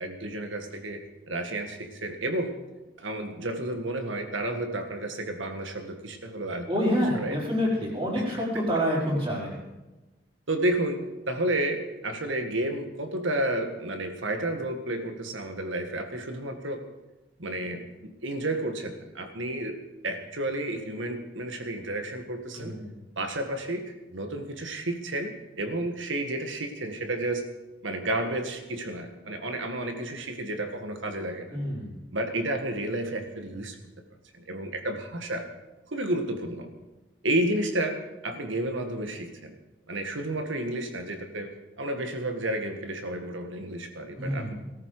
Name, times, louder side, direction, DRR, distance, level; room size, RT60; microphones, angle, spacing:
voice 1, 0.0-2.6 3.0-6.7 7.1-7.4 8.2-8.3 10.5-16.8 17.4-22.8 23.2-27.5 27.8-31.6 32.1-33.8 34.3-35.4 35.9-36.7 37.2-39.5 39.9-44.5, right 1 dB, 80° right, 6 dB, 1.8 m, -31 dB
voice 2, 6.7-9.6 22.6-22.9 31.5-31.9 44.2-44.5, equal, 30° right, -4 dB, 4.7 m, -27 dB
18.5 x 13.5 x 4.9 m, 1.1 s
head